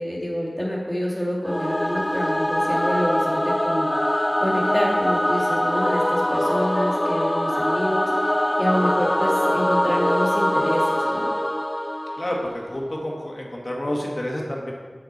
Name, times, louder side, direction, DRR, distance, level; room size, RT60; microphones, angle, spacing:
voice 1, 0.0-8.3 8.6-11.3, equal, ahead, -5 dB, 2.4 m, -27 dB
Singing / Musical instrument, 1.5-12.7, left 1 dB, 20° left, 0.4 m, -23 dB
voice 2, 12.2-14.7, left 1 dB, 45° left, -2 dB, 1.7 m, -29 dB
7.7 x 6.5 x 4.3 m, 1.5 s
wide cardioid pair, 40°, 0 cm